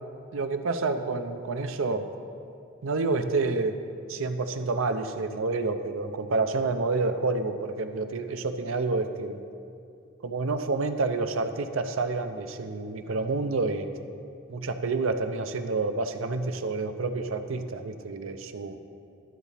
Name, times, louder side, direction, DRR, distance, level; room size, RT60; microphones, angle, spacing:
voice 1, 0.3-2.1 2.8-3.8 4.1-9.4 10.2-13.9 14.5-18.8, right 3 dB, 80° right, 8 dB, 0.6 m, -29 dB
12.0 x 4.1 x 7.3 m, 2.5 s
head